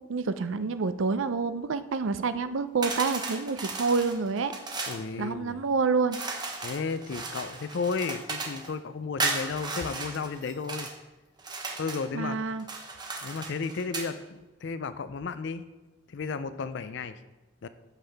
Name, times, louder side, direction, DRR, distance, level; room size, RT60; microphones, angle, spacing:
voice 1, 0.1-4.5 5.2-6.2 12.1-12.7, right 4 dB, 70° right, 12 dB, 0.5 m, -28 dB
sound 1, 2.8-5.0 6.1-8.7 9.2-10.9 11.4-12.1 12.6-14.1, right 3 dB, 20° right, 0.9 m, -35 dB
voice 2, 4.9-5.6 6.6-10.9 11.8-12.4 13.2-15.6 16.1-17.2 17.6-17.7, left 4 dB, 60° left, 12 dB, 0.4 m, -33 dB
13.0 x 5.5 x 3.4 m, 1.1 s
head